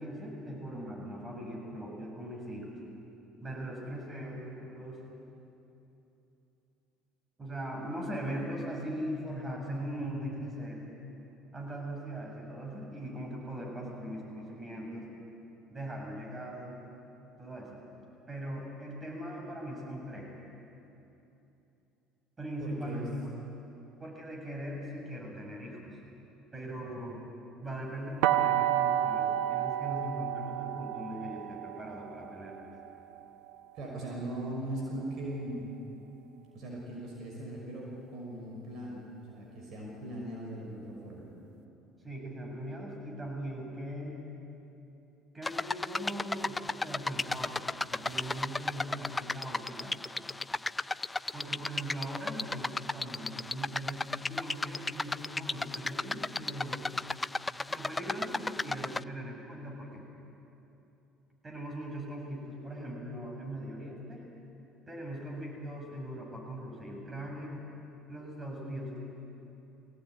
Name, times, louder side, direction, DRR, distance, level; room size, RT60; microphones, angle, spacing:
voice 1, 0.0-2.8 3.4-5.0 7.4-10.8 11.5-15.1 15.7-16.8 17.4-17.8 18.3-20.3 22.4-23.0 24.0-26.0 26.5-27.3 27.6-32.7 42.0-44.2 45.3-50.0 51.3-56.9 57.7-60.0 61.4-64.3 64.9-67.6 68.1-69.0, equal, 25° right, 0 dB, 7.3 m, -40 dB
voice 2, 22.6-23.1 33.7-35.7 36.5-41.3, right 1 dB, 55° right, -2 dB, 5.8 m, -39 dB
sound 1, 28.2-34.1, right 12 dB, 75° right, 0.9 m, -31 dB
sound 2, 45.4-59.0, left 3 dB, 15° left, 0.5 m, -34 dB
22.0 x 17.5 x 9.9 m, 2.9 s
hypercardioid pair, 65°, 0 cm